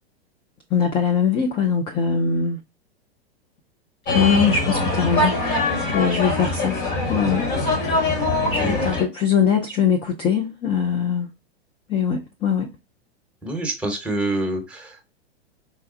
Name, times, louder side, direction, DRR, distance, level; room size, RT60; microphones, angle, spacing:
voice 1, 0.7-2.6 4.1-5.4 5.8-6.8 7.1-7.5 8.5-11.3 11.9-12.7, left 6 dB, 15° left, 0.4 m, -21 dB
sound 1, 4.1-9.0, left 2 dB, 45° left, 1.6 m, -23 dB
voice 2, 8.4-8.9 13.4-15.1, right 1 dB, 5° right, 1.0 m, -27 dB
5.0 x 2.2 x 2.6 m
figure-of-eight pair, 100°, 31 cm